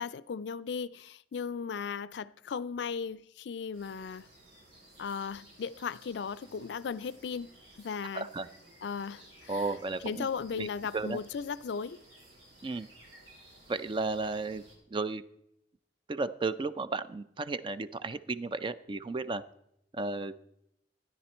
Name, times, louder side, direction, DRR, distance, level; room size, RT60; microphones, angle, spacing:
voice 1, 0.0-4.3 5.0-7.5 7.8-8.3 8.8-9.7 10.0-12.0, left 6 dB, 70° left, 0.4 m, -36 dB
sound 1, 3.7-14.8, right 1 dB, 80° right, 4.6 m, -57 dB
voice 2, 8.1-8.5 9.5-10.3 10.5-10.7 10.9-11.2 12.6-12.9 13.7-14.6 14.9-15.2 16.1-19.4 19.9-20.4, right 3 dB, 30° right, 0.4 m, -34 dB
13.5 x 9.9 x 4.3 m
head